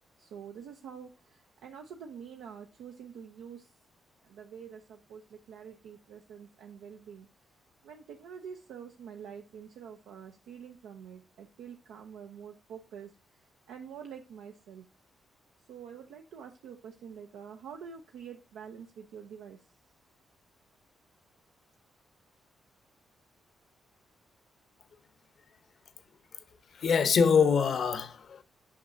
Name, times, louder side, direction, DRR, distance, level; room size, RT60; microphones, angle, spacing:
voice 1, 0.2-3.7 4.2-7.3 7.8-14.9 15.7-19.7, right 7 dB, 90° right, 0.6 m, -47 dB
voice 2, 26.7-28.4, left 6 dB, 65° left, 0.8 m, -24 dB
8.5 x 5.5 x 2.6 m
cardioid pair, 75°, 0 cm